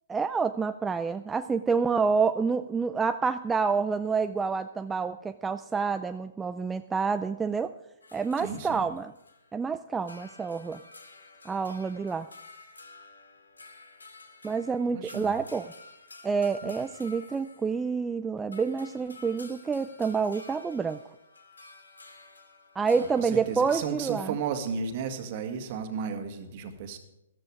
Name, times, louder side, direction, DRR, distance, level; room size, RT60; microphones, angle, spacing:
voice 1, 0.1-7.7 8.1-9.1 9.5-10.8 11.4-12.3 14.4-15.7 16.2-21.0 22.7-24.4, right 5 dB, 10° right, 9 dB, 0.4 m, -28 dB
sound 1, 8.0-9.6 9.9-18.2 18.5-23.8, left 3 dB, 90° left, 2.2 m, -51 dB
voice 2, 8.4-8.8 14.9-15.4 16.6-16.7 23.0-27.0, right 6 dB, 45° right, 6 dB, 2.0 m, -34 dB
14.0 x 13.5 x 4.9 m, 0.86 s
hypercardioid pair, 130°, 0 cm